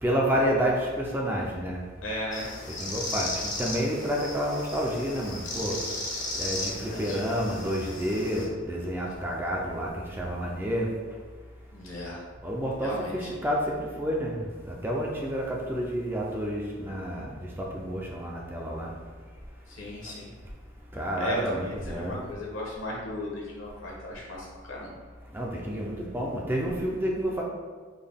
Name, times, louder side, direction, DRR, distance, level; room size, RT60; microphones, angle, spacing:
voice 1, 0.0-1.8 2.7-5.8 6.4-10.9 12.4-14.4 14.6-18.9 20.9-22.2 25.3-27.4, equal, 10° right, -2 dB, 0.3 m, -29 dB
voice 2, 2.0-2.5 6.5-7.2 11.7-12.2 12.8-13.3 19.7-20.3 21.2-24.9, left 1 dB, 75° left, -4 dB, 1.0 m, -36 dB
sound 1, 2.3-8.5, left 2 dB, 40° left, 0.5 m, -35 dB
3.8 x 2.2 x 3.4 m, 1.5 s
head